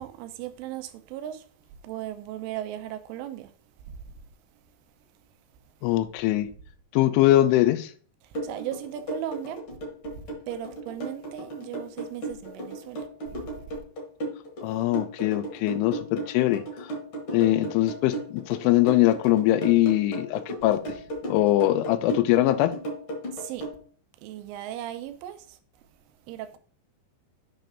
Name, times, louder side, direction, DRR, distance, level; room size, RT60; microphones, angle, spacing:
voice 1, 0.0-3.5 3.9-4.2 4.5-4.6 8.2-9.6 10.1-13.6 23.3-23.7 24.2-26.6, right 12 dB, 90° right, 3.3 m, -38 dB
voice 2, 5.8-6.5 6.9-7.9 14.6-16.9 17.3-20.8 21.3-22.7, left 15 dB, 85° left, 3.1 m, -22 dB
sound 1, 8.3-23.7, right 2 dB, 45° left, 1.7 m, -34 dB
9.1 x 3.3 x 5.9 m
omnidirectional pair, 5.6 m